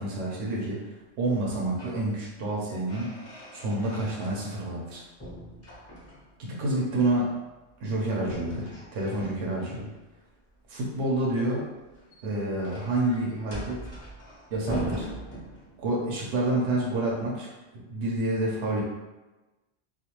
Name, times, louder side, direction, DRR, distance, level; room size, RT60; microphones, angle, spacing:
voice 1, 0.0-3.2 3.5-5.0 6.4-7.4 7.8-9.9 10.7-11.7 12.2-13.8 14.5-15.1 15.8-18.8, right 1 dB, 70° right, -4 dB, 0.9 m, -28 dB
sound 1, 1.5-2.1 2.4-4.9 5.2-6.4 8.2-9.8 11.8-16.0, right 1 dB, 15° left, 0.6 m, -40 dB
2.4 x 2.1 x 2.8 m, 1.1 s
omnidirectional pair, 1.3 m